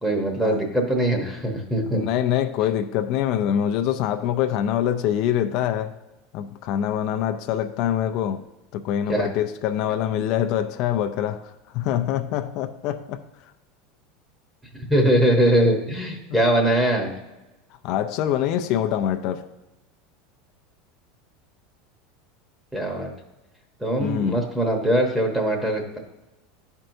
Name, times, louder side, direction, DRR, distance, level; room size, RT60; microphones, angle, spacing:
voice 1, 0.0-2.0 9.1-9.3 14.7-17.1 22.7-23.1 23.8-26.0, right 1 dB, 10° right, 1.0 m, -22 dB
voice 2, 1.9-5.9 6.3-8.4 8.7-13.2 17.8-19.4 24.0-24.4, left 10 dB, 55° left, 0.4 m, -24 dB
11.0 x 4.4 x 2.7 m
supercardioid pair, 135°, 0 cm